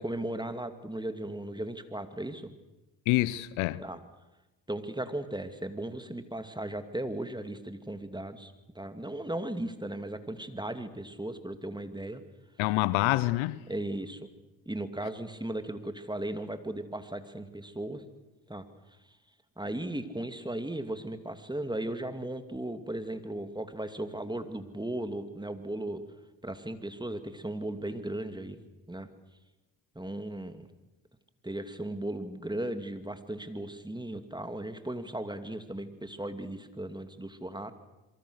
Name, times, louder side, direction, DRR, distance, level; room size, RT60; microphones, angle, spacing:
voice 1, 0.0-2.5 3.8-4.0 4.7-12.2 13.7-14.3 14.7-18.0 18.5-18.7 19.6-26.0 26.4-28.6 28.9-29.1 29.9-30.7 31.4-37.7, right 1 dB, 10° right, 2.6 m, -36 dB
voice 2, 3.1-3.8 12.6-13.6, left 18 dB, 80° left, 0.9 m, -26 dB
27.0 x 23.5 x 6.5 m
hypercardioid pair, 50°, 48 cm